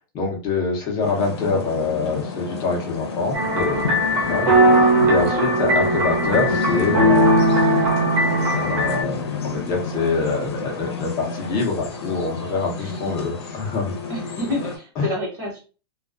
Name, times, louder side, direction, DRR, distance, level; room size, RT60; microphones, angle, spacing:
voice 1, 0.1-7.6 8.1-8.3 8.6-13.9 15.0-15.1, left 4 dB, 30° left, 0 dB, 0.8 m, -25 dB
sound 1, 1.0-14.8, left 4 dB, 85° left, 0.7 m, -29 dB
sound 2, 3.3-9.0, right 1 dB, 50° right, 1.1 m, -19 dB
voice 2, 4.2-4.6 12.7-13.1 14.1-15.6, left 1 dB, 30° right, -2 dB, 1.2 m, -29 dB
2.3 x 2.2 x 2.4 m, 0.34 s
supercardioid pair, 155°, 13 cm